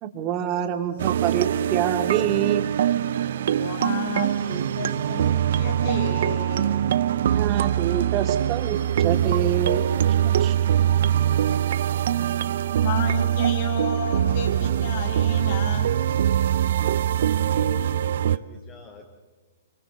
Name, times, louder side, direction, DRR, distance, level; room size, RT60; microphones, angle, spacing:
voice 1, 0.0-2.7 7.3-9.8 10.2-10.6, right 10 dB, 35° right, 6 dB, 2.5 m, -26 dB
sound 1, 1.0-18.4, right 10 dB, 65° right, 0.7 m, -23 dB
voice 2, 3.5-6.8 11.3-11.6 12.8-15.9, left 4 dB, 60° left, 3 dB, 5.9 m, -32 dB
voice 3, 16.7-19.0, left 6 dB, 35° left, 1 dB, 3.4 m, -44 dB
27.5 x 25.0 x 6.5 m, 1.4 s
hypercardioid pair, 125°, 0 cm